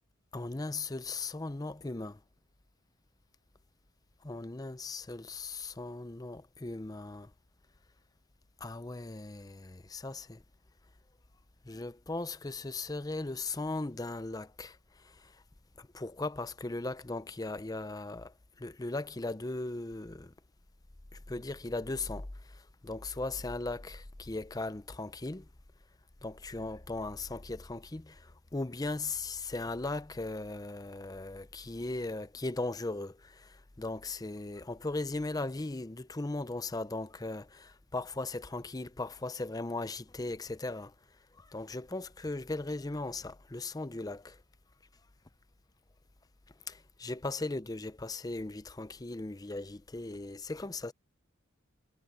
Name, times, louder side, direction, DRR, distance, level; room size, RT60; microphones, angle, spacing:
voice 1, 0.3-2.2 4.2-7.3 8.6-10.4 11.7-14.8 15.8-20.3 21.3-22.3 22.8-25.5 26.2-40.9 41.4-44.4 46.7-50.9, left 2 dB, 20° left, 0.5 m, -38 dB
head